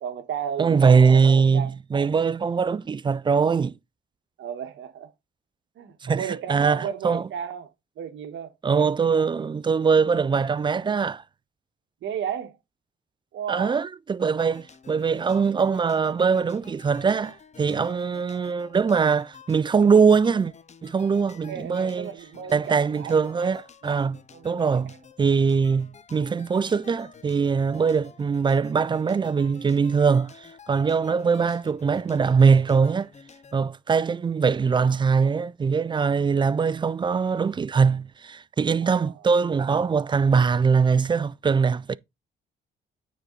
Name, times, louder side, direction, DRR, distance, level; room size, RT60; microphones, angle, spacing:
voice 1, 0.0-1.7 4.4-5.1 5.8-8.5 12.0-12.6 13.3-13.8 21.5-23.2 24.0-25.0 38.8-39.1, right 8 dB, 70° right, 1.4 m, -34 dB
voice 2, 0.6-3.8 6.0-7.3 8.6-11.2 13.5-20.5 20.8-22.1 22.5-24.2 24.4-24.9 25.2-33.1 33.5-41.9, right 5 dB, 25° right, 0.4 m, -22 dB
sound 1, 14.4-33.6, left 6 dB, 35° left, 0.7 m, -50 dB
9.2 x 4.1 x 3.8 m
cardioid pair, 90°, 20 cm